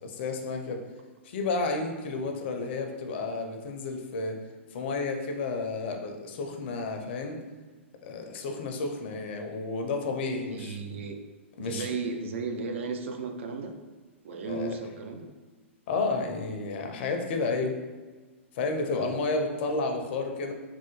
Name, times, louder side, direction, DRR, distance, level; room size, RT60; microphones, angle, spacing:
voice 1, 0.0-0.8 1.2-4.4 4.7-7.4 8.0-11.0 11.6-11.9 14.4-14.7 15.9-17.7 18.5-20.5, left 3 dB, 55° left, 4 dB, 0.5 m, -31 dB
voice 2, 10.5-11.2 11.6-13.7 14.2-15.3 18.9-19.1, right 4 dB, 70° right, 5 dB, 0.4 m, -35 dB
3.2 x 2.1 x 3.0 m, 1.3 s
hypercardioid pair, 115°, 7 cm